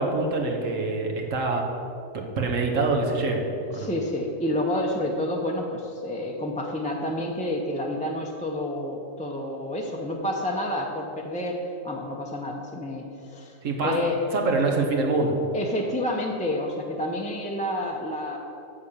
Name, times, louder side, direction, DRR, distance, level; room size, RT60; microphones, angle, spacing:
voice 1, 0.0-1.6 2.1-3.4 3.7-3.9 13.6-13.9 14.3-15.3, right 3 dB, 70° right, 1 dB, 1.5 m, -25 dB
voice 2, 3.7-13.5 13.8-14.2 15.5-18.4, left 1 dB, 10° left, 0 dB, 0.6 m, -29 dB
7.7 x 6.7 x 7.3 m, 2.5 s
omnidirectional pair, 1.4 m